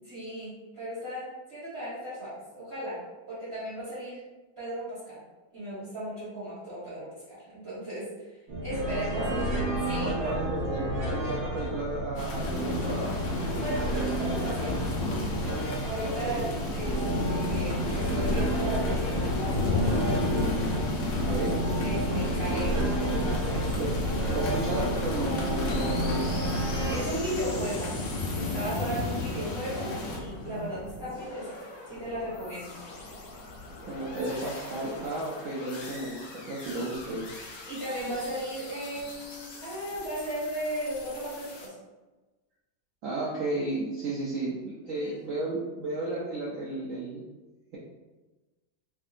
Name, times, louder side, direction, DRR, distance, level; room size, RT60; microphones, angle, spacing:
voice 1, 0.0-4.2 4.6-5.2 5.5-8.1 8.6-9.3 9.9-10.4 13.5-14.9 15.8-19.9 21.1-21.5 21.8-23.8 26.9-27.9 28.3-31.6 31.9-32.7 37.6-41.7 45.0-45.2, right 1 dB, 40° right, -12 dB, 1.3 m, -36 dB
sound 1, 8.5-27.0, right 1 dB, 60° right, 1.2 m, -30 dB
voice 2, 8.7-9.4 10.0-13.2 16.0-16.5 21.3-21.6 23.7-23.9 24.3-26.5 33.9-37.3 43.0-47.2, right 2 dB, 90° right, -6 dB, 0.7 m, -33 dB
sound 2, 12.2-30.2, left 2 dB, 90° left, 0.6 m, -32 dB
sound 3, 25.7-41.7, left 2 dB, 65° left, 0.9 m, -42 dB
3.5 x 2.6 x 2.5 m, 1.2 s
omnidirectional pair, 2.1 m